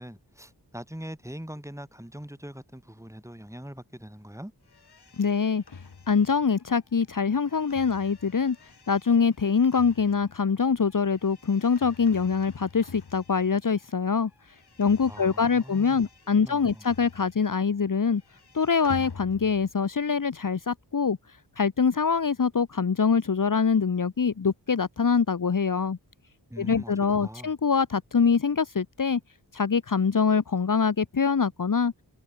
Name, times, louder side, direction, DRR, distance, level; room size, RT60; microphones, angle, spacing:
voice 1, 0.0-4.5 15.1-16.1 16.4-16.8 26.5-26.9 27.2-27.5, equal, 5° right, 7.8 m, -42 dB
sound 1, 4.7-13.9 14.2-17.7 17.9-19.8, left 5 dB, 65° left, 6.2 m, -48 dB
voice 2, 5.2-5.6 6.1-8.6 8.9-14.3 14.8-18.2 18.5-21.2 21.6-26.0 26.6-29.2 29.5-31.9, left 5 dB, 50° left, 1.4 m, -24 dB
cardioid pair, 45°, 42 cm